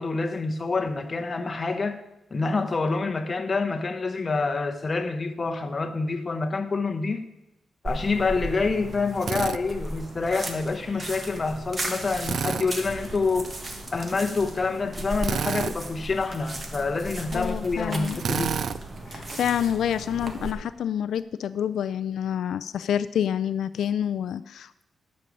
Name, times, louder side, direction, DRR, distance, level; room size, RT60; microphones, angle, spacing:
voice 1, 0.0-2.0 2.3-7.3 7.8-13.5 13.9-18.6, left 4 dB, 30° left, 1.0 m, -27 dB
sound 1, 7.9-20.5, right 1 dB, 30° right, 1.5 m, -36 dB
Drill, 9.2-9.6 12.2-12.7 15.2-15.8 18.2-18.8, right 7 dB, 55° right, 0.3 m, -28 dB
voice 2, 17.3-18.2 19.1-24.8, left 9 dB, 85° left, 0.3 m, -28 dB
12.0 x 5.4 x 8.5 m
wide cardioid pair, 140°, 0 cm